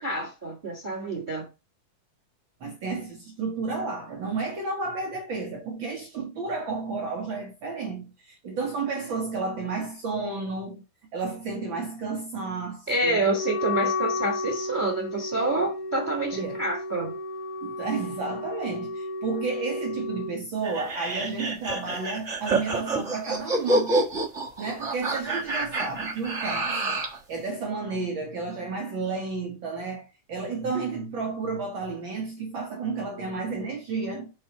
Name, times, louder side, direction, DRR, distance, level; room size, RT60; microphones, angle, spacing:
voice 1, 0.0-1.5 12.9-17.1, right 2 dB, 25° right, 1.0 m, -28 dB
voice 2, 2.6-10.8 11.1-13.2 16.3-16.6 17.6-24.0 24.6-34.3, right 4 dB, 85° right, 1.0 m, -32 dB
Wind instrument woodwind instrument, 13.3-20.4, left 3 dB, 85° left, 2.4 m, -32 dB
sound 1, 20.6-27.2, right 2 dB, 55° right, 0.7 m, -28 dB
6.2 x 4.2 x 5.6 m
omnidirectional pair, 3.9 m